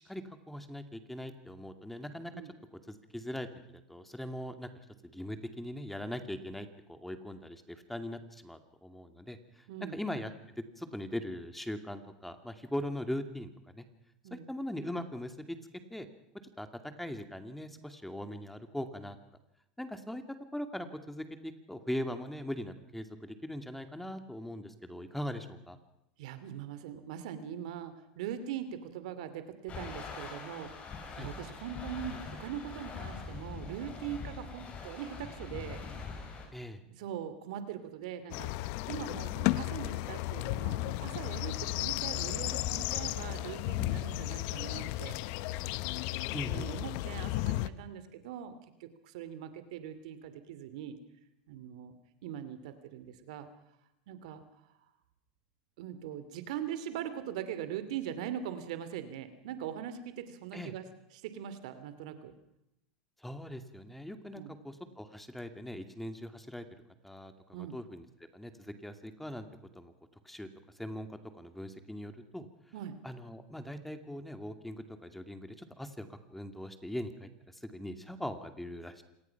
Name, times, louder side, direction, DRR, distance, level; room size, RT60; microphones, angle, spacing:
voice 1, 0.0-2.3 2.9-4.7 5.1-10.3 10.6-13.8 14.3-15.6 15.9-16.1 16.6-16.7 17.0-19.2 19.8-20.2 20.5-25.8 31.2-31.3 36.5-36.8 46.3-46.7 60.5-60.7 63.2-66.6 67.0-68.1 68.3-69.5 69.7-69.9 70.2-70.5 70.7-72.5 73.0-79.0, left 1 dB, 5° left, 8 dB, 2.4 m, -40 dB
voice 2, 26.2-30.7 31.2-35.8 37.0-45.2 46.3-51.0 51.5-51.9 52.2-53.5 54.1-54.4 55.8-60.9 61.1-62.3 64.3-64.6 67.5-67.8 72.7-73.0, right 9 dB, 70° right, 11 dB, 2.7 m, -41 dB
sound 1, 29.7-36.5, left 4 dB, 35° left, 6.4 m, -43 dB
sound 2, 38.3-47.7, left 17 dB, 60° left, 0.9 m, -34 dB
27.0 x 19.5 x 5.9 m, 0.84 s
hypercardioid pair, 105°, 4 cm